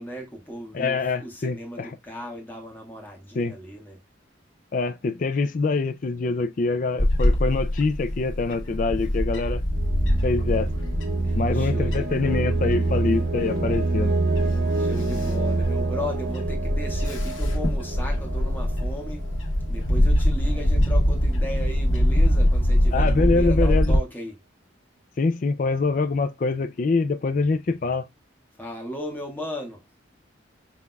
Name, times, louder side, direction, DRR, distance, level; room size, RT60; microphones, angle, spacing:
voice 1, 0.0-4.0 11.2-12.6 14.8-19.2 19.7-24.4 28.6-29.8, equal, 10° left, 1.5 m, -36 dB
voice 2, 0.7-1.9 3.4-3.5 4.7-9.6 10.2-10.7 11.4-14.1 22.9-23.9 25.2-28.1, left 3 dB, 45° left, 0.3 m, -25 dB
Bird / Wind, 7.0-24.0, equal, 85° left, 1.4 m, -24 dB
sound 1, 9.7-19.5, right 3 dB, 60° right, 0.7 m, -27 dB
5.7 x 3.6 x 2.2 m
head